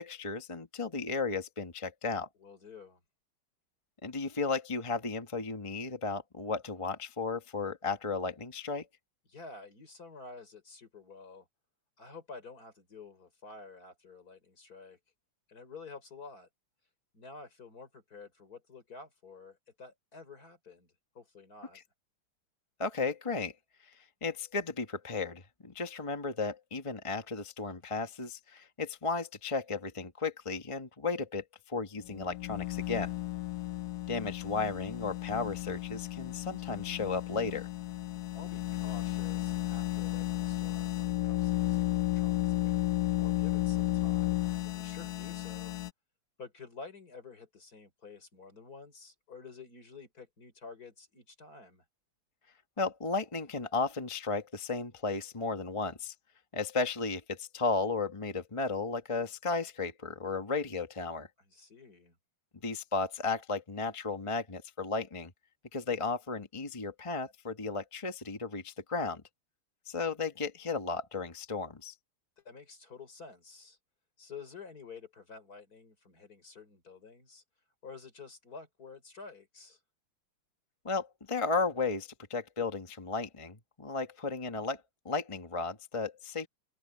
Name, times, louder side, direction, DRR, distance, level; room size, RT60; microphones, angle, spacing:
voice 1, 0.0-2.3 4.0-8.9 22.8-23.5 24.2-33.1 34.1-37.7 52.8-56.1 56.5-61.3 62.6-65.3 65.7-69.2 69.9-71.9 80.8-86.5, left 4 dB, 20° left, 0.9 m, -34 dB
voice 2, 2.4-3.0 9.3-11.5 12.0-15.0 15.5-16.5 17.1-21.8 38.3-45.8 46.4-51.8 61.4-62.2 72.4-73.8 74.2-77.4 77.8-79.8, left 4 dB, 45° left, 4.5 m, -50 dB
sound 1, 32.0-45.9, left 17 dB, 75° left, 0.9 m, -33 dB
open air
omnidirectional pair, 2.4 m